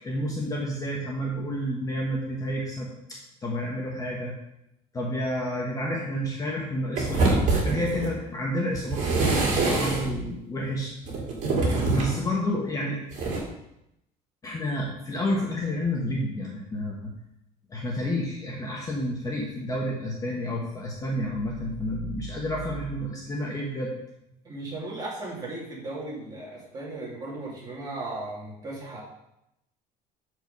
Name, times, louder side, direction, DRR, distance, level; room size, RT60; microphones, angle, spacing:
voice 1, 0.0-2.9 3.4-4.3 4.9-10.9 11.9-13.0 14.4-17.1 17.7-23.9, equal, 20° left, -2 dB, 1.2 m, -30 dB
sound 1, 7.0-8.2 8.7-10.2 11.0-12.2 13.1-13.4, right 3 dB, 50° right, 2.7 m, -25 dB
voice 2, 24.4-29.0, right 2 dB, 25° right, -5 dB, 2.8 m, -36 dB
7.8 x 4.7 x 5.4 m, 0.84 s
cardioid pair, 150°, 16 cm